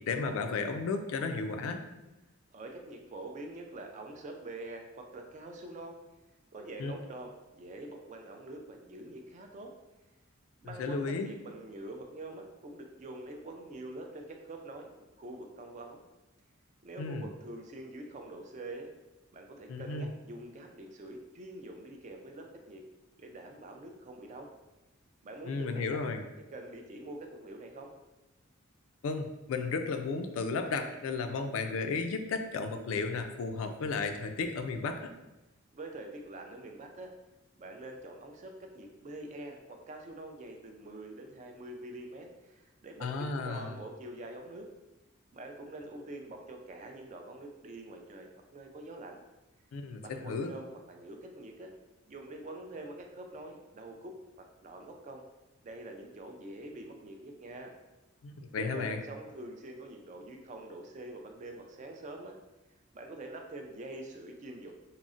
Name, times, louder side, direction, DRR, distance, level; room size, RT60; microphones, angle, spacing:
voice 1, 0.0-1.8 6.8-6.9 10.8-11.3 17.0-17.3 19.7-20.1 25.4-26.2 29.0-35.1 43.0-43.7 49.7-50.5 58.2-59.0, left 4 dB, 75° left, 6 dB, 0.3 m, -34 dB
voice 2, 2.5-6.0 6.5-9.7 10.6-14.9 15.2-16.0 16.8-18.9 19.3-22.8 23.2-24.5 25.2-26.0 26.5-27.9 35.7-37.1 37.6-44.7 45.3-49.2 50.0-51.7 52.1-55.2 55.6-57.7 58.5-62.4 62.9-64.7, right 2 dB, 35° right, 3 dB, 0.3 m, -45 dB
3.7 x 2.0 x 2.4 m, 1.0 s
head